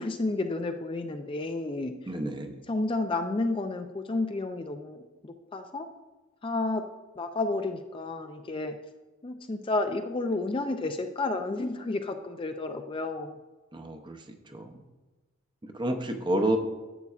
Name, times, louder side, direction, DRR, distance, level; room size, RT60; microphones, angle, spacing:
voice 1, 0.0-2.1 2.7-5.9 6.4-6.8 7.2-8.8 9.2-13.4, left 2 dB, 25° left, 6 dB, 0.4 m, -31 dB
voice 2, 2.1-2.5 13.7-14.2 14.5-14.8 15.6-16.6, right 1 dB, 25° right, 5 dB, 0.6 m, -29 dB
11.0 x 8.2 x 2.4 m, 1.2 s
head